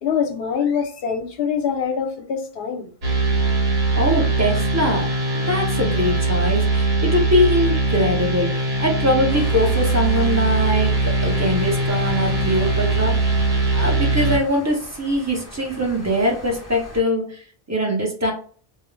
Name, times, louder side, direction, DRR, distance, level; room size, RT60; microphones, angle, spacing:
voice 1, 0.0-2.9, left 7 dB, 70° left, 4 dB, 0.8 m, -24 dB
sound 1, 3.0-14.4, right 2 dB, 80° right, 1.0 m, -21 dB
voice 2, 3.9-10.9 11.2-13.4 13.7-18.3, equal, 20° right, -1 dB, 0.6 m, -22 dB
sound 2, 9.3-17.0, equal, 20° left, 0.7 m, -38 dB
2.4 x 2.0 x 3.1 m, 0.42 s
omnidirectional pair, 1.0 m